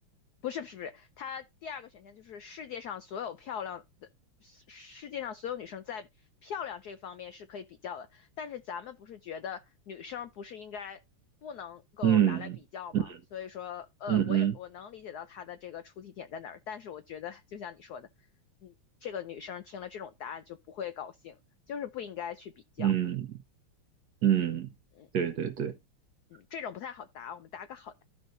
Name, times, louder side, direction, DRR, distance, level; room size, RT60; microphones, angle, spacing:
voice 1, 0.4-3.8 4.4-6.1 6.4-11.0 11.4-18.1 18.6-18.7 19.0-21.4 21.7-22.9 24.9-25.1 26.3-28.0, left 8 dB, 85° left, 0.8 m, -41 dB
voice 2, 12.0-12.6 12.9-13.0 14.1-14.5 22.8-23.3 24.2-24.7 25.1-25.7, right 10 dB, 60° right, 1.1 m, -26 dB
14.0 x 5.4 x 2.6 m
omnidirectional pair, 2.3 m